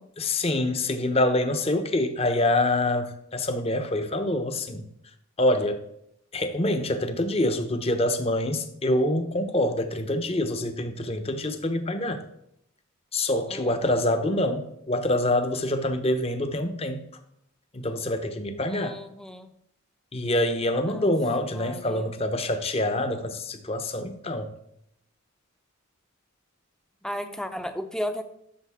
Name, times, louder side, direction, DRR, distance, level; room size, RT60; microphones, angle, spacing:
voice 1, 0.2-4.9 5.4-5.8 6.3-12.2 13.1-17.0 17.7-19.0 20.1-24.5, left 1 dB, 30° left, 8 dB, 0.8 m, -26 dB
voice 2, 13.5-14.0 18.7-19.5 20.9-21.1 21.4-22.2 27.0-28.2, equal, 5° left, 8 dB, 0.6 m, -35 dB
13.0 x 6.3 x 3.6 m, 0.76 s
head